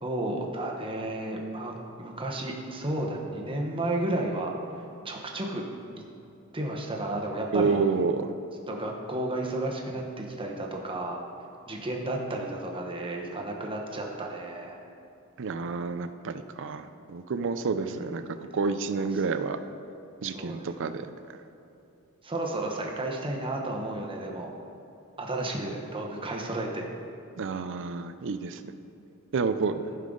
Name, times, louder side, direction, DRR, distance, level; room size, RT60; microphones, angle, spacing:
voice 1, 0.0-4.5 5.0-5.7 6.0-6.1 6.5-7.8 8.7-11.2 11.7-14.8 17.8-18.4 18.9-19.2 20.2-20.7 22.2-24.5 25.2-26.9 29.8-30.0, right 1 dB, 25° right, 0 dB, 1.1 m, -32 dB
voice 2, 7.5-8.3 15.4-18.2 18.5-19.6 20.2-21.1 27.4-28.6 29.3-29.7, right 5 dB, 60° right, 10 dB, 0.5 m, -29 dB
14.5 x 5.6 x 3.8 m, 2.8 s
head